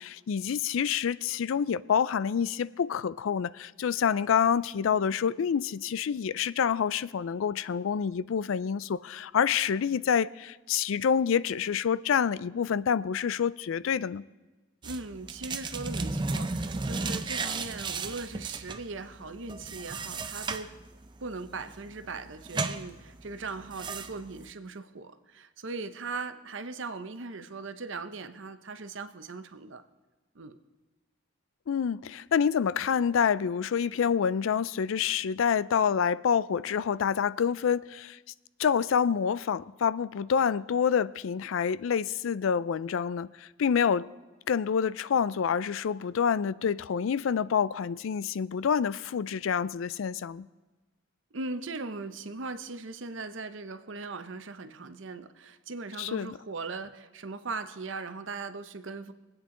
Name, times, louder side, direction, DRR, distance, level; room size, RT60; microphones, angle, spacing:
voice 1, 0.0-14.2 31.7-38.2 38.6-44.1 44.5-50.4 56.0-56.4, left 7 dB, 75° left, 0.4 m, -27 dB
sound 1, 14.8-24.5, right 3 dB, 20° right, 0.5 m, -35 dB
voice 2, 14.8-20.7 21.2-29.8 30.3-30.6 51.3-59.1, right 3 dB, 65° right, 0.8 m, -39 dB
24.0 x 8.9 x 3.8 m
head